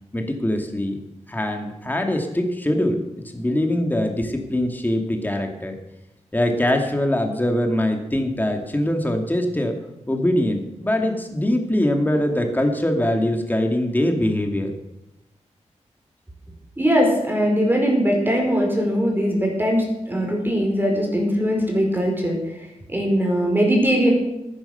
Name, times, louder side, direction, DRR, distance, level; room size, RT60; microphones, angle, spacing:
voice 1, 0.1-1.0 1.3-3.0 3.3-5.8 6.3-9.8 10.1-14.7, left 1 dB, 15° left, 3 dB, 2.2 m, -22 dB
voice 2, 16.8-22.4 22.9-24.1, equal, 15° right, 0 dB, 5.1 m, -20 dB
14.0 x 9.9 x 6.8 m, 0.92 s
cardioid pair, 65°, 12 cm